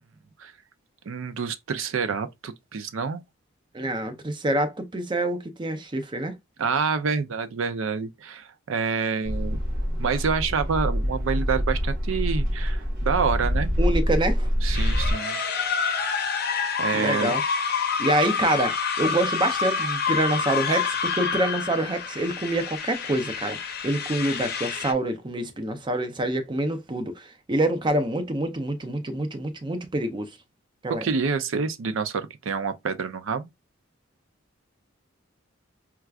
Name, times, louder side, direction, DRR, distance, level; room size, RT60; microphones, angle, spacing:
voice 1, 1.1-3.2 6.6-9.6 10.0-13.7 14.6-15.4 16.8-17.3 31.0-33.5, right 5 dB, 75° right, 0.5 m, -27 dB
voice 2, 3.7-6.4 13.8-14.5 16.9-17.4 18.0-23.6 23.8-30.3 30.8-31.1, right 1 dB, 25° right, 0.5 m, -26 dB
sound 1, 9.2-15.1, equal, 45° right, 1.2 m, -25 dB
sound 2, 14.7-24.9, left 6 dB, 50° left, 0.6 m, -28 dB
4.4 x 2.3 x 2.3 m
head